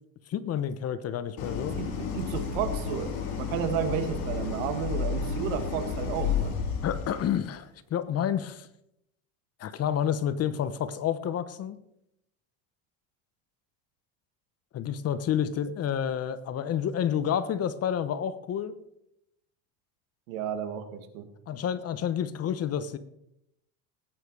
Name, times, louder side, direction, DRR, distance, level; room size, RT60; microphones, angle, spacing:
voice 1, 0.3-1.8 6.8-8.7 9.6-11.8 14.7-18.7 21.5-23.0, left 9 dB, 35° left, 13 dB, 1.0 m, -29 dB
Idling, 1.4-7.4, left 6 dB, 60° left, 4.2 m, -31 dB
voice 2, 1.8-3.1 3.4-6.5 20.3-21.3, right 9 dB, 80° right, 7 dB, 2.2 m, -32 dB
18.0 x 9.2 x 4.9 m, 0.80 s
supercardioid pair, 130°, 40 cm